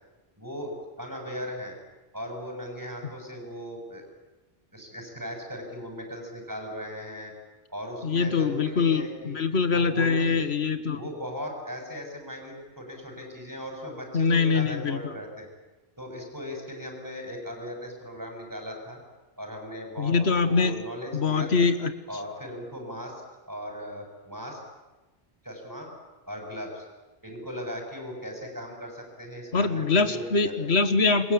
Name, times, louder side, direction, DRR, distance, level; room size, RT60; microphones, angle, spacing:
voice 1, 0.4-1.8 2.1-4.0 4.7-7.3 7.7-9.4 9.7-10.5 10.9-15.5 16.0-19.0 19.4-21.5 22.1-23.1 23.5-24.6 25.4-25.9 26.3-26.8 27.2-30.5, equal, 20° right, 2 dB, 7.2 m, -38 dB
voice 2, 8.0-11.0 14.1-15.1 20.0-20.7 21.1-21.9 29.5-31.3, left 4 dB, 85° left, 10 dB, 1.7 m, -23 dB
27.0 x 22.5 x 8.7 m, 1.1 s
omnidirectional pair, 1.1 m